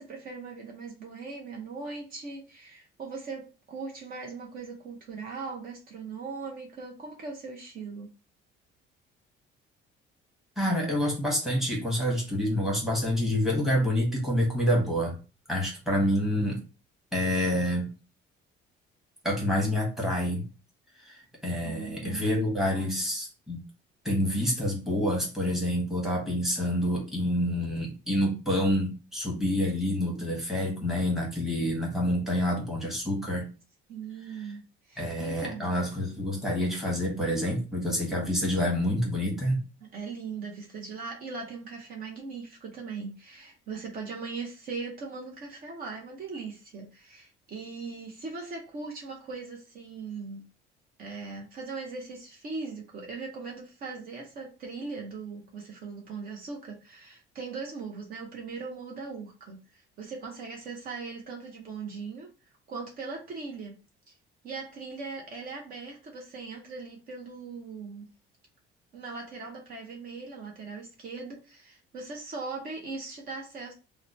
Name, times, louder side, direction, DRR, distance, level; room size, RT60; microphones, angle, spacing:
voice 1, 0.0-8.1 21.7-22.3 33.9-34.6 34.9-35.7 39.9-50.4 51.0-62.3 62.7-63.8 64.1-64.2 64.4-68.1 68.9-73.7, right 4 dB, 45° right, 0 dB, 0.7 m, -39 dB
voice 2, 10.6-15.2 15.5-16.6 17.1-17.9 19.2-20.4 21.0-23.6 24.0-33.5 34.3-34.5 35.0-39.6, equal, ahead, -2 dB, 1.1 m, -27 dB
2.9 x 2.1 x 3.8 m, 0.33 s
cardioid pair, 160°, 21 cm